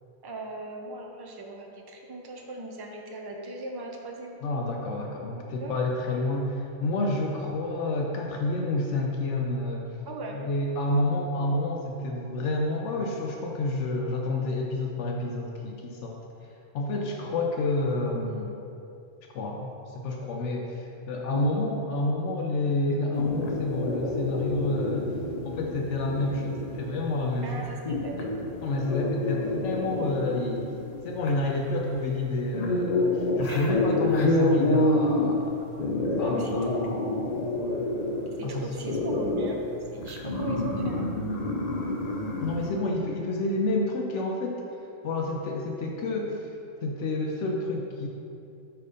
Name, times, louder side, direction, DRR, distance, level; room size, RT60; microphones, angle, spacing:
voice 1, 0.2-4.4 5.6-5.7 10.1-10.5 21.3-21.6 27.4-28.2 33.5-34.0 36.2-36.6 38.4-39.6 39.9-41.1, right 2 dB, 30° right, 0 dB, 0.4 m, -38 dB
voice 2, 4.4-10.0 10.3-16.2 16.7-18.5 19.3-25.1 25.4-27.6 28.6-30.7 31.0-35.6 36.2-36.7 38.4-38.7 42.4-44.6 45.0-46.5 46.8-48.1, left 2 dB, 75° left, 1 dB, 0.9 m, -29 dB
sound 1, 23.1-42.7, left 2 dB, 45° left, 0.6 m, -29 dB
5.2 x 4.6 x 4.9 m, 2.7 s
omnidirectional pair, 1.3 m